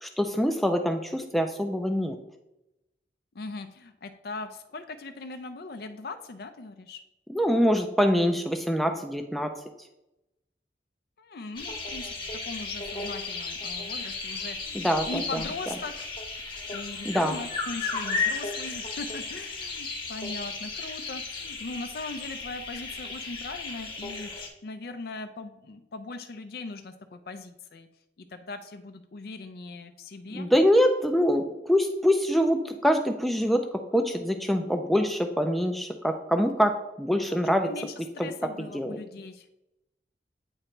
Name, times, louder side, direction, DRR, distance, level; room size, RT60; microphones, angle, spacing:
voice 1, 0.0-2.2 7.3-9.5 14.7-15.2 17.0-17.4 30.3-37.7 38.2-38.3 38.6-39.0, equal, ahead, 5 dB, 0.4 m, -24 dB
voice 2, 3.3-7.0 11.2-12.1 12.4-16.1 16.7-24.3 24.6-27.9 28.3-30.5 37.2-39.4, left 3 dB, 60° left, 7 dB, 0.4 m, -40 dB
sound 1, 11.5-24.5, left 4 dB, 30° left, 1.0 m, -34 dB
8.8 x 3.0 x 4.4 m, 0.89 s
head